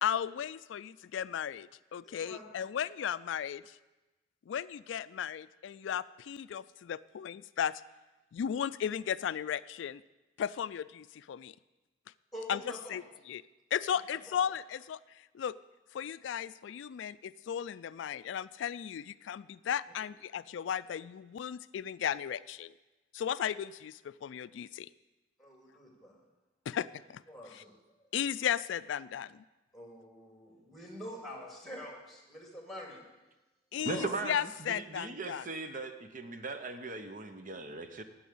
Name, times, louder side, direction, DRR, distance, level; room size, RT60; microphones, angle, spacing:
voice 1, 0.0-3.8 4.5-7.8 8.3-10.0 10.4-11.5 12.5-12.6 12.9-13.4 13.7-15.0 15.3-15.5 15.9-22.7 23.1-24.9 26.7-27.2 27.5-27.6 28.1-29.4 33.7-35.5, left 8 dB, 70° left, 16 dB, 0.3 m, -35 dB
voice 2, 2.0-2.7 12.3-13.0 13.9-14.4 25.4-26.2 27.3-27.7 29.7-33.1 33.7-34.1, left 1 dB, ahead, 1 dB, 2.2 m, -46 dB
voice 3, 33.8-38.0, right 3 dB, 45° right, 8 dB, 0.8 m, -39 dB
10.0 x 6.3 x 8.5 m, 1.1 s
head